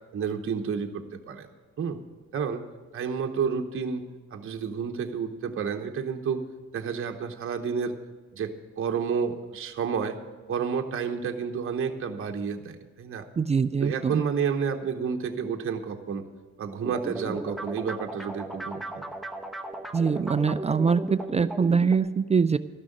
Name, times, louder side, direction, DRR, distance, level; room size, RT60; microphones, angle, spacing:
voice 1, 0.1-1.5 1.8-2.0 2.3-2.6 2.9-4.0 4.3-6.4 6.7-8.0 8.3-10.2 10.5-13.3 13.8-16.2 16.6-19.0, right 6 dB, 45° right, 4 dB, 1.0 m, -30 dB
voice 2, 13.4-14.2 19.9-22.6, right 5 dB, 20° right, 13 dB, 0.3 m, -23 dB
sound 1, 16.8-22.0, right 1 dB, ahead, 0.9 m, -36 dB
13.0 x 6.2 x 8.7 m, 1.3 s
cardioid pair, 90°, 30 cm